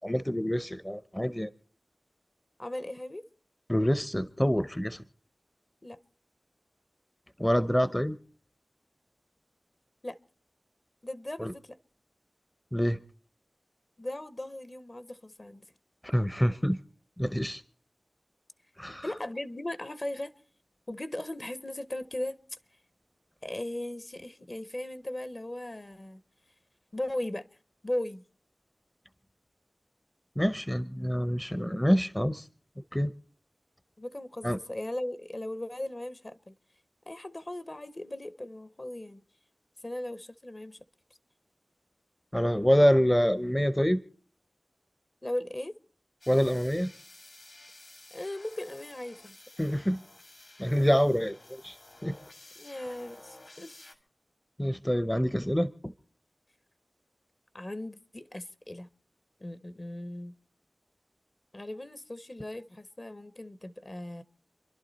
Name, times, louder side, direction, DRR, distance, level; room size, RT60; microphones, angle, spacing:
voice 1, 0.0-1.5 3.7-5.0 7.4-8.2 11.4-11.5 12.7-13.0 16.0-16.8 17.2-17.6 18.8-19.1 30.4-32.5 32.9-33.1 34.4-34.6 42.3-44.0 46.3-46.9 49.6-50.0 50.6-51.8 52.0-52.2 54.6-55.9, equal, 10° left, 0.6 m, -26 dB
voice 2, 2.6-3.2 5.8-6.0 10.0-10.2 11.0-11.8 14.0-15.7 19.0-20.3 20.9-22.6 23.4-26.2 26.9-27.5 27.8-28.2 34.0-36.5 37.1-39.2 39.8-40.8 45.2-45.7 48.1-49.4 52.6-53.9 57.5-58.9 59.4-60.3 61.5-64.2, left 1 dB, 35° left, 0.9 m, -37 dB
sound 1, 46.2-53.9, left 2 dB, 55° left, 1.9 m, -53 dB
29.0 x 11.5 x 4.0 m
wide cardioid pair, 55°, 0 cm